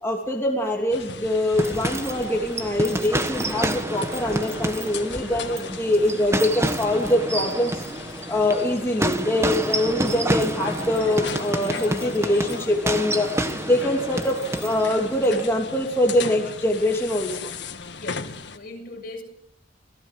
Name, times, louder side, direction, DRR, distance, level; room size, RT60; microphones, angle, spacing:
voice 1, 0.0-7.7 8.3-13.3 13.6-17.4, left 1 dB, 15° left, -1 dB, 3.0 m, -23 dB
sound 1, 0.9-18.6, left 4 dB, 65° left, 1.7 m, -37 dB
sound 2, 1.5-15.5, right 1 dB, 15° right, 1.4 m, -29 dB
voice 2, 18.0-19.2, left 2 dB, 50° left, 2 dB, 7.3 m, -39 dB
27.0 x 18.5 x 7.7 m, 0.78 s
head